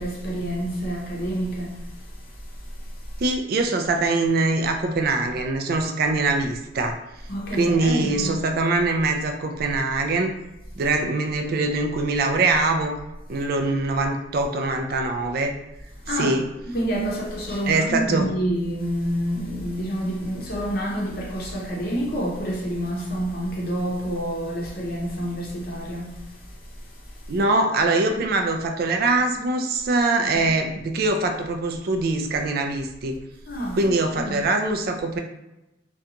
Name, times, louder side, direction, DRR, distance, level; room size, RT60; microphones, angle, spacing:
voice 1, 0.0-1.8 7.3-8.4 16.1-16.4 16.6-26.1 30.2-30.5 33.5-34.5, equal, 55° left, 0.6 m, -28 dB
voice 2, 3.2-7.0 7.5-10.3 10.8-12.9 13.3-15.5 16.1-16.4 17.7-18.3 27.3-33.2 33.7-35.2, right 3 dB, 55° right, 0.3 m, -23 dB
2.5 x 2.2 x 2.7 m
head